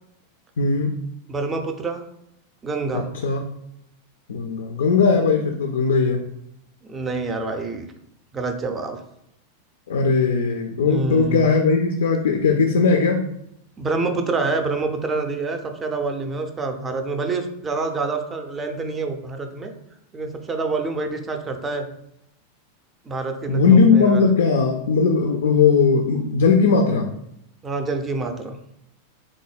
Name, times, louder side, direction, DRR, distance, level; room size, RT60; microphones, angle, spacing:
voice 1, 0.6-0.9 2.9-3.4 4.3-6.2 9.9-13.3 23.5-27.1, left 5 dB, 65° left, 3 dB, 0.3 m, -18 dB
voice 2, 1.3-2.0 2.6-3.1 6.9-7.9 8.3-9.0 10.8-11.5 13.8-19.7 20.1-21.9 23.1-24.2 27.6-28.6, right 3 dB, 20° right, 6 dB, 0.4 m, -27 dB
3.6 x 2.1 x 3.3 m, 0.78 s
figure-of-eight pair, 90°, 0 cm